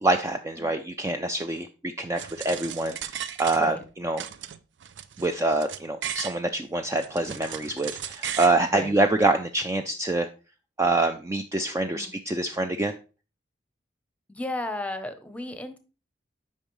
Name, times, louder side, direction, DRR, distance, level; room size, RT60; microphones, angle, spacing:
voice 1, 0.0-3.8 4.0-4.2 5.2-10.3 10.8-13.0, right 2 dB, 15° right, 6 dB, 0.3 m, -26 dB
sound 1, 2.2-3.9 4.2-6.4 6.8-8.6, right 9 dB, 85° right, 0.5 m, -36 dB
voice 2, 14.3-15.8, left 1 dB, 10° left, 9 dB, 0.7 m, -34 dB
8.7 x 5.4 x 3.1 m, 0.33 s
head